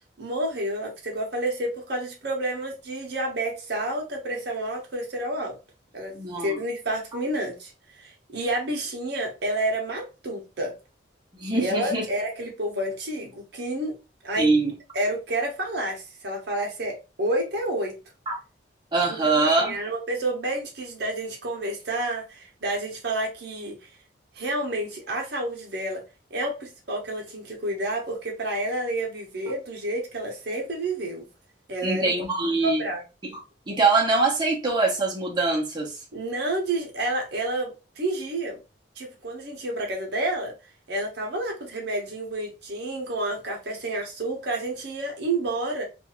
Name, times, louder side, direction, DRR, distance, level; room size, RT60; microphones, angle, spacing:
voice 1, 0.2-5.6 5.9-7.7 8.0-10.7 11.6-14.0 14.2-14.6 14.9-18.0 19.1-23.9 24.4-26.0 26.3-31.2 31.7-32.1 32.6-33.0 36.1-38.6 39.0-40.5 40.9-45.8, right 1 dB, 60° right, 0.8 m, -29 dB
voice 2, 6.1-6.6 11.4-12.0 14.4-14.7 18.3-18.4 18.9-19.8 31.8-32.8 33.2-33.3 33.7-36.0, right 3 dB, 25° right, 0.8 m, -23 dB
2.6 x 2.3 x 2.9 m
head